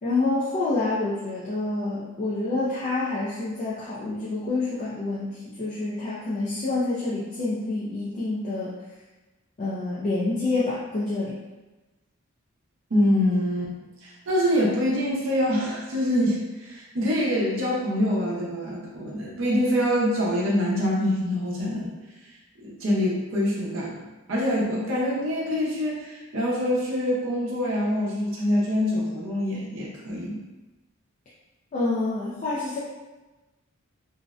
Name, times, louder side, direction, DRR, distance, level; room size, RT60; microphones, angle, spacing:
voice 1, 0.0-8.8 9.6-11.3 31.7-32.8, left 2 dB, 35° left, -8 dB, 0.3 m, -27 dB
voice 2, 12.9-13.7 14.0-21.9 22.6-30.4, equal, 65° right, -5 dB, 0.6 m, -25 dB
2.5 x 2.0 x 2.4 m, 1.1 s
head